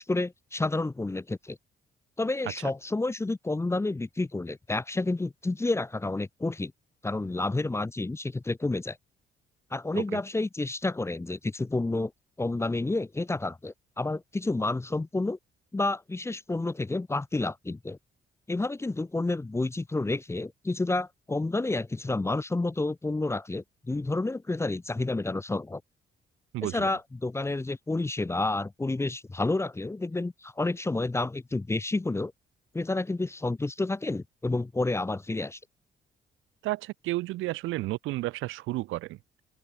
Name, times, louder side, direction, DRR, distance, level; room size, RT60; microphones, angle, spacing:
voice 1, 0.0-1.6 2.2-6.7 7.0-9.0 9.7-12.1 12.4-15.4 15.7-18.0 18.5-25.8 26.6-32.3 32.7-35.6, left 2 dB, 15° left, 0.7 m, -30 dB
voice 2, 26.5-26.9 36.6-39.2, right 18 dB, 90° right, 0.6 m, -32 dB
open air
cardioid pair, 90°, 20 cm